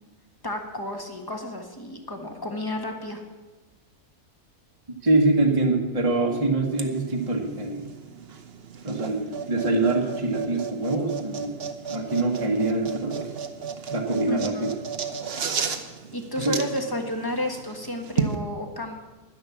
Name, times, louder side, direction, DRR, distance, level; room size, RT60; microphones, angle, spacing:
voice 1, 0.4-3.2 14.3-14.7 16.1-18.9, left 1 dB, 15° left, 4 dB, 1.4 m, -31 dB
voice 2, 5.0-7.9 8.8-11.5 11.9-13.3 13.9-14.7 16.4-16.6, right 2 dB, 25° right, 0 dB, 1.3 m, -24 dB
sound 1, 6.7-18.4, right 6 dB, 50° right, 1.1 m, -34 dB
11.5 x 10.0 x 7.1 m, 1.2 s
omnidirectional pair, 1.5 m